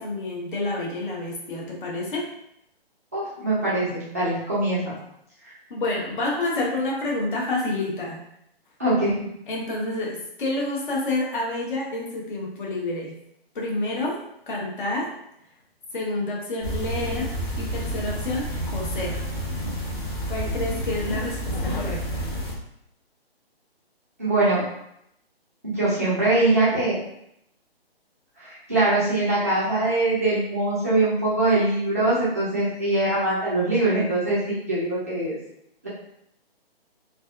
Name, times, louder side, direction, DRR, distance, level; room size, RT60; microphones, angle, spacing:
voice 1, 0.0-2.3 5.7-8.2 9.5-13.2 13.5-14.2 14.5-15.1 15.9-19.2 20.3-22.3, left 2 dB, 55° left, -3 dB, 0.8 m, -29 dB
voice 2, 3.1-4.8 8.8-9.3 24.2-24.6 25.6-27.0 28.4-35.4, right 2 dB, 15° right, -10 dB, 0.4 m, -22 dB
sound 1, 16.6-22.5, equal, 25° left, 0.6 m, -29 dB
2.5 x 2.4 x 2.3 m, 0.76 s
figure-of-eight pair, 140°, 31 cm